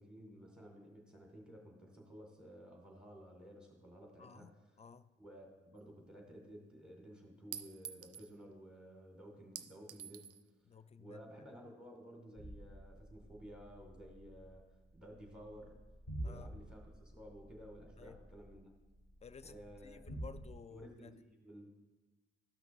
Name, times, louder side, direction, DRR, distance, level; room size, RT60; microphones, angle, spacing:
voice 1, 0.0-4.8 5.2-10.4 11.0-14.6 14.9-15.8 16.2-18.7 19.4-20.0 20.7-21.7, equal, 5° right, 0 dB, 1.9 m, -54 dB
voice 2, 4.2-5.1 10.7-11.2 16.2-16.5 18.0-18.2 19.2-19.6 19.8-21.1, left 6 dB, 20° left, 14 dB, 0.4 m, -54 dB
Chink clink, 5.8-5.9 7.5-8.3 9.6-10.4, right 9 dB, 45° right, 0.5 m, -48 dB
sound 1, 12.4-20.5, right 1 dB, 40° left, 2.0 m, -50 dB
13.0 x 5.8 x 2.6 m, 1.2 s
hypercardioid pair, 45°, 32 cm